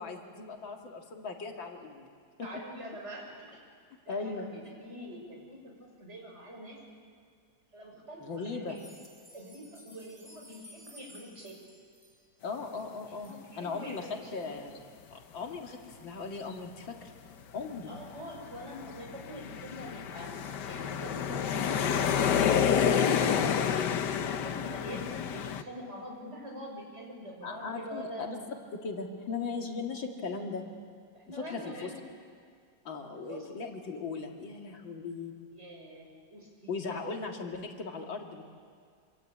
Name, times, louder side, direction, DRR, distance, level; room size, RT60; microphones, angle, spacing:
voice 1, 0.0-2.1 2.4-2.5 4.1-4.5 8.2-8.8 12.4-14.8 15.1-17.1 17.5-17.9 27.4-28.4 28.7-30.6 31.3-31.9 32.8-35.3 36.7-38.4, left 4 dB, 90° left, 2 dB, 3.0 m, -38 dB
voice 2, 2.4-3.6 4.0-6.8 7.7-8.8 9.3-11.5 13.1-14.5 17.9-20.3 20.6-23.8 24.1-28.4 31.1-32.0 33.1-33.5 35.5-37.0, equal, 35° right, -1 dB, 6.4 m, -45 dB
sound 1, 8.7-13.4 13.9-14.0 14.4-14.5 15.0-15.1, left 1 dB, 5° right, 3.2 m, -56 dB
sound 2, 17.6-17.7 18.4-25.6, left 8 dB, 65° left, 1.5 m, -29 dB
26.5 x 26.0 x 8.6 m, 2.1 s
omnidirectional pair, 2.0 m